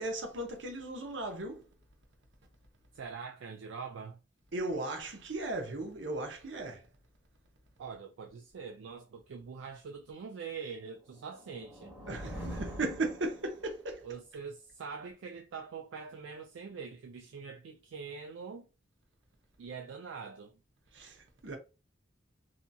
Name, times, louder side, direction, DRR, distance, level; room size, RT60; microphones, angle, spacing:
voice 1, 0.0-1.7 4.5-6.8 12.1-14.0 20.9-21.6, right 2 dB, 70° right, 0.8 m, -36 dB
voice 2, 2.9-4.2 7.8-11.9 14.0-18.7 19.6-20.6, right 5 dB, 85° right, 0.4 m, -44 dB
sound 1, 11.0-13.9, equal, 10° right, 0.9 m, -44 dB
2.7 x 2.6 x 2.3 m
head